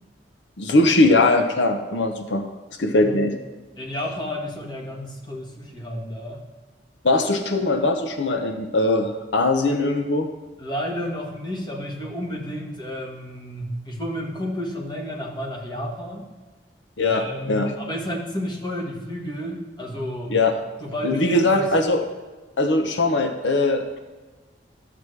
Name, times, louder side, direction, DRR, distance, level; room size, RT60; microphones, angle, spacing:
voice 1, 0.6-2.5 2.8-3.4 7.0-10.3 17.0-17.7 20.3-20.6 21.0-22.0 22.6-24.0, left 2 dB, 90° left, 6 dB, 0.8 m, -20 dB
voice 2, 2.8-3.2 3.8-6.4 10.6-16.3 17.1-20.3 20.8-21.7, equal, 25° left, -2 dB, 1.6 m, -31 dB
12.0 x 7.9 x 3.3 m, 1.3 s
head